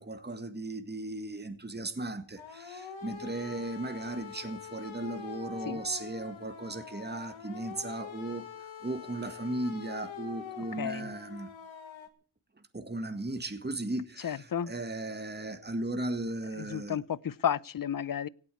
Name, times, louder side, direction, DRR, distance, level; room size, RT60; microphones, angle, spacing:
voice 1, 0.0-8.5 8.8-11.5 12.7-17.0, right 2 dB, 20° right, 1.9 m, -36 dB
sound 1, 2.4-12.1, left 6 dB, 80° left, 2.0 m, -44 dB
voice 2, 10.8-11.1 14.2-14.7 16.6-18.3, left 9 dB, 45° left, 0.7 m, -32 dB
17.0 x 8.4 x 8.4 m
cardioid pair, 60°, 46 cm